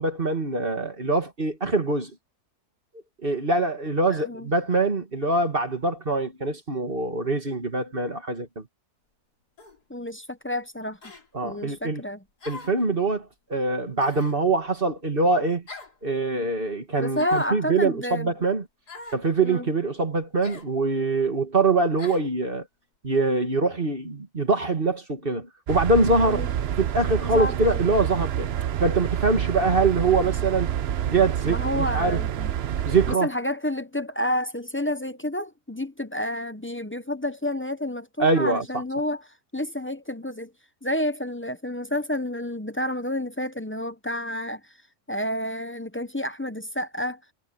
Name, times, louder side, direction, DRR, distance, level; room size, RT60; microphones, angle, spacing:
voice 1, 0.0-2.1 3.2-8.6 11.3-12.0 12.5-15.6 16.0-18.6 19.1-22.6 23.0-26.4 26.8-28.5 28.8-30.7 31.1-32.2 32.9-33.3 38.2-38.6, right 3 dB, 35° right, 2.4 m, -24 dB
voice 2, 4.1-4.5 9.9-11.0 11.4-12.2 17.0-18.3 19.4-19.7 26.2-26.5 27.2-27.8 31.5-32.5 33.1-40.5 40.8-44.7 45.1-47.2, left 1 dB, 15° left, 0.5 m, -30 dB
sound 1, 9.6-9.8 11.0-11.3 12.4-12.8 14.0-14.4 15.7-16.0 17.1-17.6 18.9-19.2 20.4-20.7 22.0-22.3, left 3 dB, 90° left, 3.8 m, -42 dB
sound 2, 25.7-33.1, right 10 dB, 55° right, 0.7 m, -28 dB
omnidirectional pair, 1.6 m